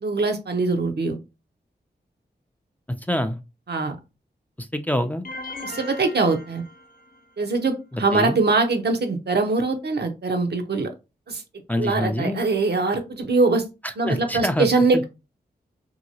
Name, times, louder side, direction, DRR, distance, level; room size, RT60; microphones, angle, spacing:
voice 1, 0.0-1.2 3.7-4.0 5.6-6.6 7.4-10.9 11.3-11.4 11.8-13.6 14.0-15.1, right 3 dB, 70° right, 5 dB, 0.7 m, -22 dB
voice 2, 2.9-3.4 4.6-5.2 7.9-8.4 11.7-12.4 13.8-14.7 14.9-15.1, left 1 dB, 10° left, 8 dB, 0.4 m, -26 dB
sound 1, 5.2-7.3, left 2 dB, 55° left, 0.6 m, -38 dB
2.8 x 2.7 x 2.7 m, 0.26 s
cardioid pair, 50°, 18 cm